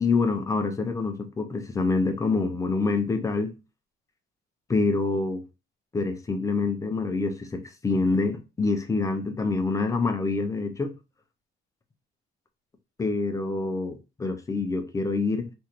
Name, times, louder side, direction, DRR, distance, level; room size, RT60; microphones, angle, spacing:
voice 1, 0.0-3.6 4.7-5.4 5.9-10.9 13.0-15.5, left 3 dB, 15° left, 0.4 m, -26 dB
3.1 x 2.4 x 2.8 m
cardioid pair, 160°, 19 cm